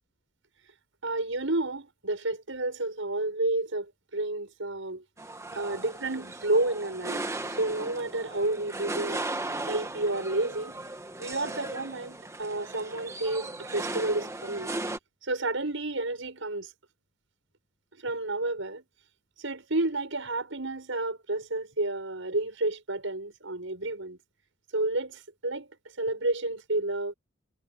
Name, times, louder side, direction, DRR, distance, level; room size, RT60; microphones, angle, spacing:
voice 1, 1.0-5.0 5.5-7.2 7.5-9.2 9.6-10.8 11.2-14.7 15.2-16.7 18.0-18.8 19.4-24.2 24.7-25.7 26.0-27.1, right 2 dB, 70° right, 6.9 m, -30 dB
sound 1, 5.2-15.0, right 2 dB, 15° right, 1.7 m, -37 dB
head